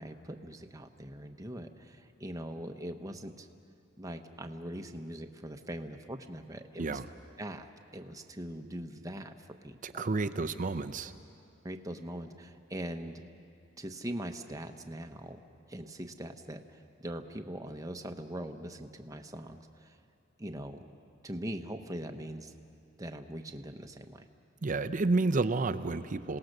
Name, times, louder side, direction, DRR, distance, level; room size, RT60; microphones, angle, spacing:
voice 1, 0.0-3.5 4.0-7.0 7.4-7.7 7.9-9.3 9.6-10.1 11.6-13.2 13.8-15.4 15.7-16.6 17.0-19.9 20.4-20.8 21.2-22.5 23.0-24.2, right 1 dB, 15° right, 5 dB, 0.9 m, -41 dB
voice 2, 9.8-11.1 24.6-26.4, right 3 dB, 40° right, 11 dB, 0.6 m, -30 dB
28.0 x 18.0 x 6.6 m, 2.5 s
head